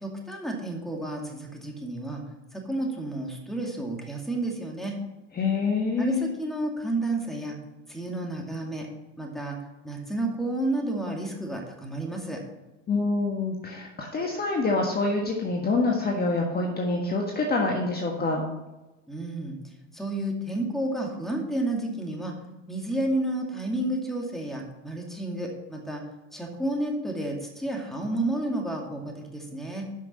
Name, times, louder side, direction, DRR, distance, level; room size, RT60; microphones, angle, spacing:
voice 1, 0.0-2.2 2.5-4.9 6.0-7.6 7.9-8.9 9.2-9.6 9.8-12.4 19.1-19.6 19.9-22.3 22.7-26.0 26.3-29.8, right 1 dB, ahead, 0 dB, 2.4 m, -31 dB
voice 2, 5.3-6.3 12.9-18.4, left 3 dB, 25° left, 0 dB, 1.5 m, -26 dB
11.0 x 6.0 x 4.2 m, 1.0 s
hypercardioid pair, 95°, 37 cm